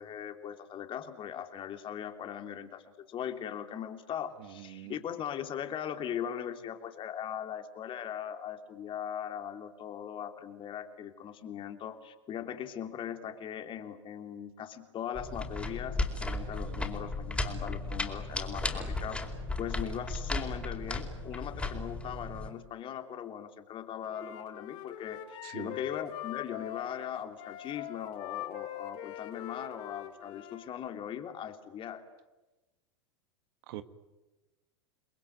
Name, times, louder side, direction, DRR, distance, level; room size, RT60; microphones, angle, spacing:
voice 1, 0.0-2.8 3.1-19.2 19.6-32.0, left 9 dB, 35° left, 7 dB, 3.1 m, -39 dB
voice 2, 4.4-5.0 16.6-16.9 18.7-18.8 25.4-25.8 33.7-33.8, right 14 dB, 60° right, 12 dB, 1.7 m, -45 dB
sound 1, 15.1-22.5, left 2 dB, 5° left, 4.6 m, -35 dB
sound 2, 18.6-21.1, equal, 10° right, 4.5 m, -48 dB
Wind instrument woodwind instrument, 24.0-30.7, left 12 dB, 50° left, 3.9 m, -43 dB
29.5 x 21.0 x 9.4 m, 1.1 s
hypercardioid pair, 95°, 15 cm